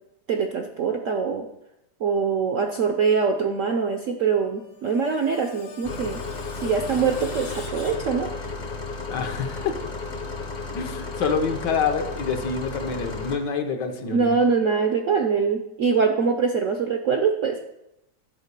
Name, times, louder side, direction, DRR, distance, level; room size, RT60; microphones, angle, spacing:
voice 1, 0.3-1.5 2.0-6.2 6.6-8.5 14.0-17.6, right 5 dB, 65° right, 5 dB, 0.8 m, -23 dB
Screech, 4.4-8.7, left 6 dB, 85° left, 2.0 m, -45 dB
sound 1, 5.8-13.4, left 3 dB, 35° left, 0.7 m, -33 dB
voice 2, 9.1-9.8 10.7-14.4, left 5 dB, 65° left, 6 dB, 1.5 m, -27 dB
11.0 x 4.5 x 6.7 m, 0.85 s
omnidirectional pair, 2.1 m